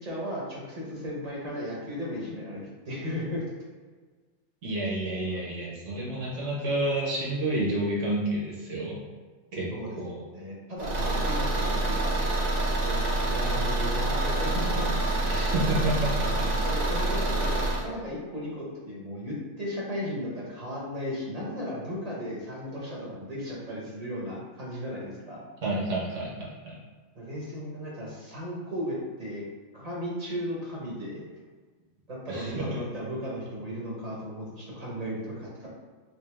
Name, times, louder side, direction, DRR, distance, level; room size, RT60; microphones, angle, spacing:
voice 1, 0.0-3.4 5.3-5.4 9.7-10.0 10.3-12.1 12.8-15.0 16.6-25.5 27.2-29.4 29.7-31.2 32.1-35.7, equal, 35° right, -5 dB, 0.8 m, -35 dB
voice 2, 4.6-9.0 9.5-9.7 10.0-10.2 15.3-16.3 25.6-26.8 32.3-32.8, right 1 dB, 65° right, -4 dB, 1.2 m, -29 dB
Car / Engine, 10.8-17.9, right 2 dB, 85° right, 0.3 m, -27 dB
3.4 x 2.7 x 3.3 m, 1.4 s
omnidirectional pair, 1.4 m